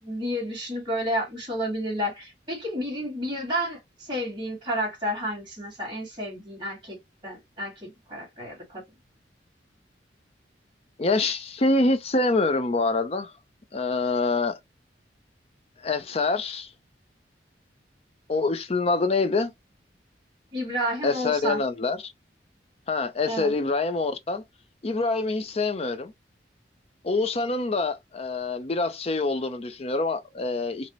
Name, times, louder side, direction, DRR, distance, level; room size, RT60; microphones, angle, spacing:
voice 1, 0.0-7.0 7.2-8.8 20.5-21.6 23.3-23.5, equal, 25° right, 2.1 m, -31 dB
voice 2, 11.0-13.3 13.7-14.6 15.8-16.7 18.3-19.5 21.0-22.1 22.9-24.4 24.8-26.1 27.0-30.9, left 3 dB, 35° left, 0.5 m, -25 dB
4.0 x 2.1 x 3.0 m
head